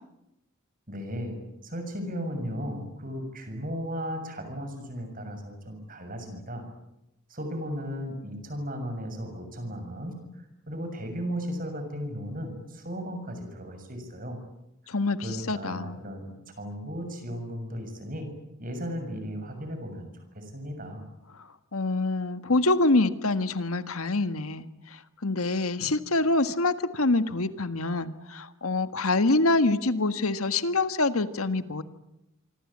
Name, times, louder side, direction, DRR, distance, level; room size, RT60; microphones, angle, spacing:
voice 1, 0.9-1.4 1.6-6.6 7.3-14.4 14.8-18.3 18.6-21.1, equal, 40° right, 6 dB, 7.0 m, -36 dB
voice 2, 14.9-16.0 21.7-31.8, left 2 dB, 85° left, 11 dB, 1.7 m, -26 dB
26.0 x 25.0 x 8.7 m, 0.88 s
head